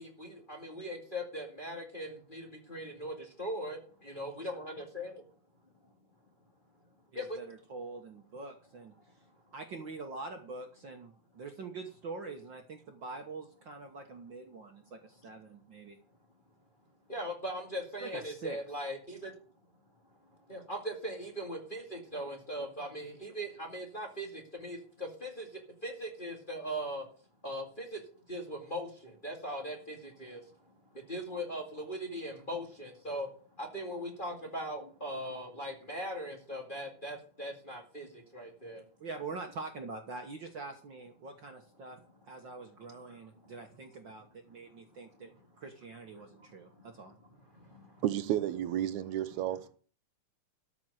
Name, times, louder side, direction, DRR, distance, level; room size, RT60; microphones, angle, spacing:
voice 1, 0.0-5.2 7.1-7.4 17.1-19.3 20.5-27.1 27.4-28.0 28.3-30.5 30.9-33.3 33.6-38.8 43.1-43.5 44.7-44.8 45.2-45.3 46.2-46.9 47.5-48.0, equal, 20° left, 1.9 m, -40 dB
voice 2, 7.1-9.1 9.5-16.0 18.0-18.6 39.0-47.1, right 3 dB, 50° right, 1.5 m, -44 dB
voice 3, 48.0-49.7, right 12 dB, 80° right, 2.1 m, -32 dB
13.5 x 6.1 x 7.9 m
omnidirectional pair, 3.3 m